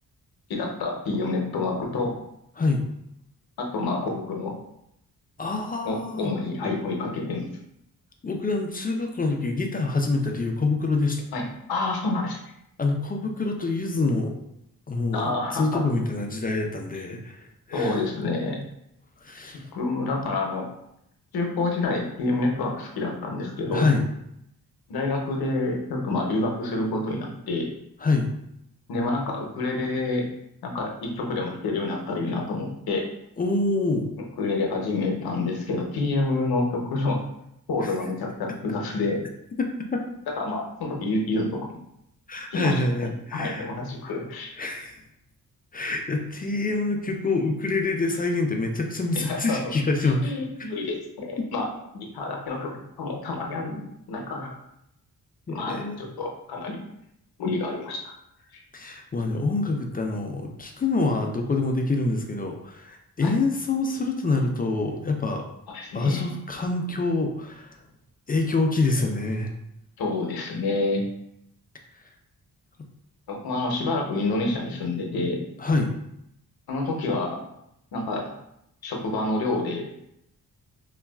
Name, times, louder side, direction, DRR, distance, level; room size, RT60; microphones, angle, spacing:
voice 1, 0.5-2.1 3.6-4.5 5.8-7.5 11.3-12.4 15.1-15.8 17.7-18.6 19.7-20.7 21.3-23.9 24.9-27.7 28.9-30.3 30.6-33.1 34.4-37.2 37.7-39.3 40.4-41.6 42.5-44.5 49.1-49.6 50.2-51.7 51.9-54.5 55.5-56.8 57.4-58.1 58.5-58.6 63.2-63.4 65.7-66.3 70.0-71.0 73.3-75.4 76.7-77.4 77.9-78.4 78.8-79.8, left 2 dB, 75° left, 1 dB, 0.8 m, -28 dB
voice 2, 2.6-2.9 5.4-6.3 8.2-11.2 12.8-14.4 14.9-18.0 19.2-19.7 23.7-24.1 28.0-28.3 33.4-34.1 37.8-37.9 39.6-40.0 42.3-43.7 44.6-45.0 45.7-50.2 51.4-51.5 55.5-56.0 58.7-65.5 65.9-67.8 68.3-69.5 75.6-75.9, left 3 dB, 25° left, 2 dB, 0.3 m, -26 dB
3.9 x 2.3 x 2.3 m, 0.78 s
cardioid pair, 105°, 37 cm